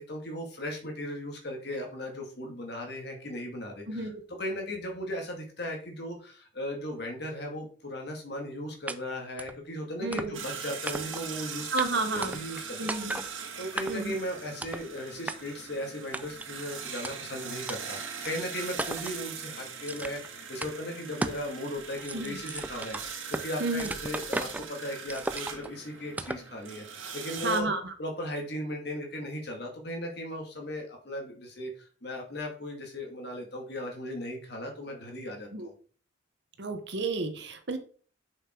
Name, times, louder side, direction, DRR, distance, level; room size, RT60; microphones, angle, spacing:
voice 1, 0.0-11.7 12.1-26.9 27.1-27.7 28.0-35.7, left 1 dB, 55° left, 1 dB, 2.1 m, -37 dB
voice 2, 3.9-4.2 10.0-10.4 11.7-12.4 12.8-13.2 13.9-14.1 22.1-22.4 23.6-23.9 27.4-27.9 35.5-35.7 36.6-37.8, right 3 dB, 60° right, 7 dB, 1.1 m, -31 dB
sound 1, 8.9-9.0 9.4-9.6 10.1-10.5 10.9-11.3 11.8-11.9 12.2-12.6 12.9-13.3 13.8-14.1 14.6-14.9 15.3-15.4 16.1-16.5 17.0-17.1 17.7-17.8 18.2-18.3 18.8-19.2 19.8-20.3 20.6-20.7 21.2-21.5 21.8-23.5 23.8-24.7 25.1-25.7 26.2-26.5, right 2 dB, 10° right, 0.4 m, -35 dB
sound 2, 10.3-27.6, right 6 dB, 80° right, 1.8 m, -41 dB
6.8 x 5.8 x 4.5 m, 0.43 s
head